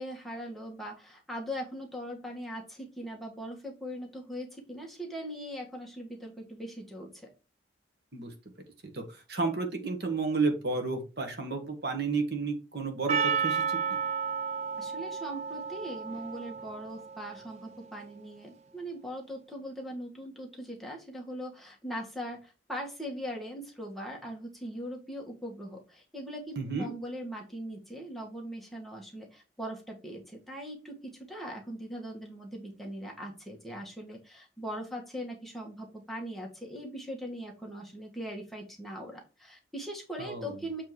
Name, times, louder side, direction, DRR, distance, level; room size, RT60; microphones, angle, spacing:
voice 1, 0.0-7.3 14.8-40.8, equal, ahead, -1 dB, 1.5 m, -40 dB
voice 2, 8.9-13.8 26.6-26.9 40.2-40.5, right 4 dB, 60° right, 5 dB, 1.7 m, -32 dB
Percussion, 13.1-17.6, right 6 dB, 35° right, 0.5 m, -32 dB
7.4 x 3.6 x 4.7 m, 0.31 s
head